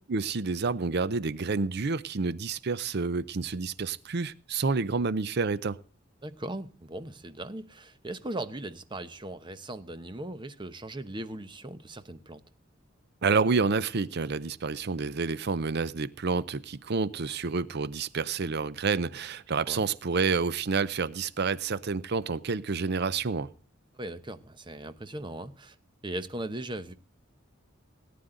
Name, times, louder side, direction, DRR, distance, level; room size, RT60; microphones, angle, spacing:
voice 1, 0.1-5.8 13.2-23.5, right 4 dB, 55° right, 0.6 m, -29 dB
voice 2, 6.2-12.4 19.7-19.8 23.9-25.8 26.0-26.9, right 1 dB, 25° right, 0.9 m, -38 dB
18.5 x 9.5 x 3.8 m
head